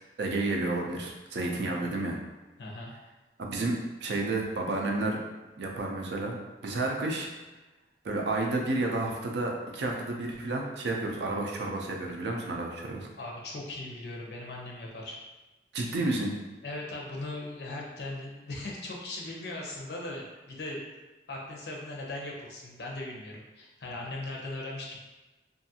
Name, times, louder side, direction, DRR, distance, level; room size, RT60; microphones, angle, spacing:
voice 1, 0.2-2.2 3.4-5.2 5.6-6.4 6.6-7.3 8.0-13.1 15.7-16.3, right 2 dB, 80° right, 0 dB, 0.5 m, -31 dB
voice 2, 1.6-1.9 2.6-2.9 13.2-15.2 16.6-20.8 21.3-25.0, left 2 dB, 70° left, -2 dB, 0.6 m, -39 dB
2.6 x 2.3 x 2.7 m, 1.1 s
head